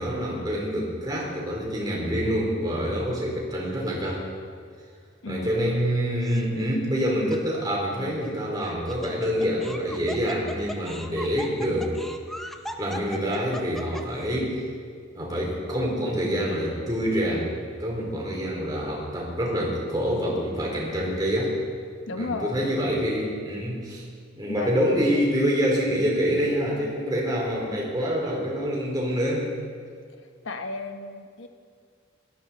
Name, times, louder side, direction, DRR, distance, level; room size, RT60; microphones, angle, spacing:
voice 1, 0.0-4.2 5.3-11.9 12.8-14.7 15.1-17.5 17.8-21.5 22.2-24.0 24.4-29.5, equal, 20° right, -3 dB, 3.3 m, -26 dB
Laughter, 6.2-6.7 7.3-7.4 8.6-14.2, equal, ahead, 0.7 m, -38 dB
voice 2, 22.1-22.7 24.5-24.7 30.4-31.5, left 3 dB, 75° left, 6 dB, 1.0 m, -33 dB
18.5 x 13.0 x 4.1 m, 2.1 s
head